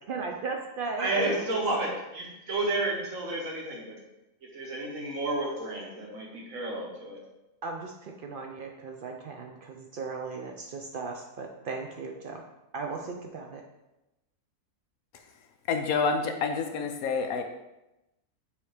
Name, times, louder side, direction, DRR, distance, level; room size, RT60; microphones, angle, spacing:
voice 1, 0.0-1.6 7.6-12.4 12.7-13.6, right 4 dB, 85° right, 2 dB, 0.4 m, -37 dB
voice 2, 1.0-4.0 4.5-7.2, right 2 dB, 55° right, -1 dB, 1.7 m, -31 dB
voice 3, 15.7-17.4, left 5 dB, 70° left, 5 dB, 1.0 m, -28 dB
7.1 x 3.2 x 4.9 m, 0.95 s
omnidirectional pair, 1.7 m